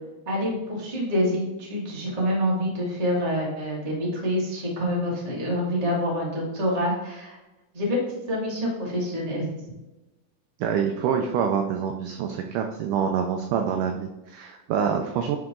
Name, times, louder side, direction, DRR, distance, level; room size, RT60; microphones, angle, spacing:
voice 1, 0.2-7.4 7.7-9.5, equal, 40° right, -3 dB, 0.5 m, -26 dB
voice 2, 10.6-15.4, right 7 dB, 85° right, 4 dB, 1.8 m, -26 dB
10.5 x 3.9 x 3.7 m, 1.0 s
omnidirectional pair, 4.3 m